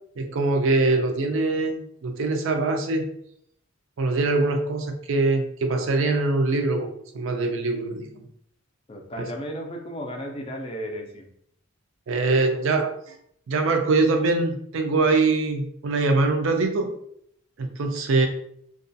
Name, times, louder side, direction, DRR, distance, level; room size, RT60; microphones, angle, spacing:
voice 1, 0.2-3.1 4.0-8.3 9.2-9.3 12.1-13.2 13.5-16.9 17.6-18.3, right 3 dB, 65° right, 5 dB, 0.4 m, -23 dB
voice 2, 8.9-11.3, equal, 25° left, 2 dB, 0.4 m, -34 dB
2.3 x 2.2 x 2.6 m, 0.69 s
head